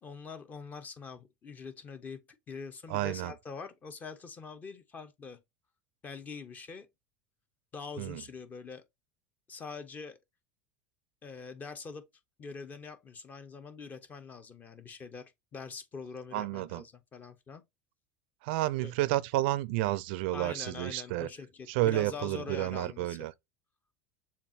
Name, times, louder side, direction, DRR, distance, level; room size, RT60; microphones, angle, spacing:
voice 1, 0.0-5.4 6.0-6.9 7.7-8.8 9.5-10.2 11.2-12.0 12.4-17.6 18.8-18.9 20.3-23.2, left 5 dB, 25° left, 1.0 m, -44 dB
voice 2, 2.9-3.3 8.0-8.2 16.3-16.8 18.4-21.3 21.7-23.3, right 17 dB, 70° right, 0.4 m, -31 dB
6.9 x 2.5 x 2.7 m
supercardioid pair, 110°, 6 cm